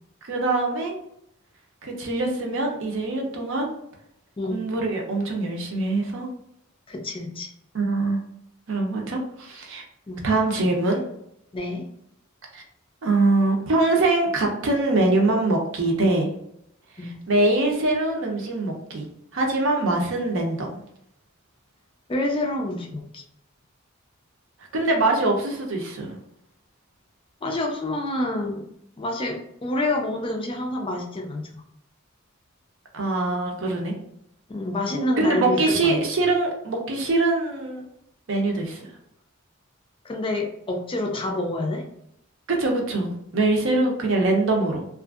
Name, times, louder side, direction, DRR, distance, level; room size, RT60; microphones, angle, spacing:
voice 1, 0.3-1.0 1.8-3.7 4.5-6.3 7.7-8.2 8.7-9.8 10.2-11.0 12.5-12.6 13.0-16.3 17.0-19.1 19.3-20.8 24.7-26.2 32.9-33.9 35.2-37.8 38.3-38.8 42.5-44.9, right 2 dB, 65° right, 1 dB, 0.6 m, -23 dB
voice 2, 6.9-7.5 10.1-10.3 11.5-11.9 17.0-17.1 22.1-23.2 27.4-28.7 29.0-31.5 34.5-36.0 40.0-41.9, left 1 dB, 25° left, 2 dB, 0.4 m, -28 dB
2.6 x 2.5 x 2.3 m, 0.75 s
head